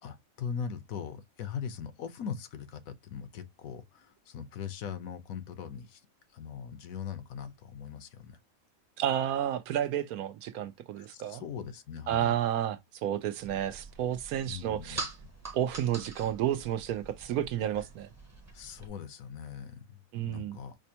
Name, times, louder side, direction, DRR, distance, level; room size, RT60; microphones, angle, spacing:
voice 1, 0.0-6.0 6.3-8.4 11.0-12.3 14.5-15.1 18.5-20.8, left 7 dB, 75° left, 1.1 m, -40 dB
voice 2, 9.0-11.4 12.1-15.0 15.5-18.1 20.1-20.6, right 11 dB, 85° right, 1.1 m, -31 dB
sound 1, 13.4-18.9, right 3 dB, 15° right, 0.6 m, -45 dB
5.2 x 2.1 x 2.7 m
omnidirectional pair, 1.5 m